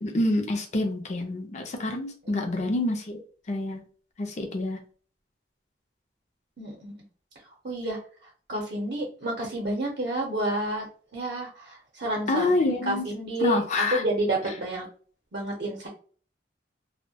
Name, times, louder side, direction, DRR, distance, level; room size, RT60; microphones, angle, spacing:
voice 1, 0.0-3.2 3.5-3.8 4.2-4.8 12.3-13.0 13.4-14.0, left 2 dB, 40° left, 4 dB, 0.5 m, -27 dB
voice 2, 6.6-6.9 7.6-10.9 11.1-12.6 12.9-14.9 15.3-15.9, right 1 dB, 60° right, -2 dB, 0.6 m, -30 dB
2.2 x 2.1 x 2.7 m, 0.42 s
head